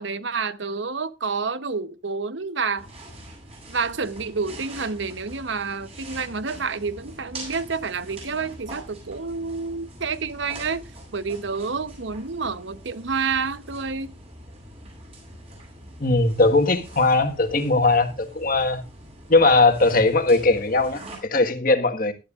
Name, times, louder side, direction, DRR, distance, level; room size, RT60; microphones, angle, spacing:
voice 1, 0.0-2.9 3.7-10.8 11.1-14.1, right 5 dB, 65° right, 0.9 m, -29 dB
sound 1, 2.8-21.2, right 1 dB, 30° right, 7.9 m, -43 dB
voice 2, 16.0-18.8 19.3-22.1, left 3 dB, 45° left, 1.6 m, -19 dB
17.0 x 12.0 x 2.5 m
head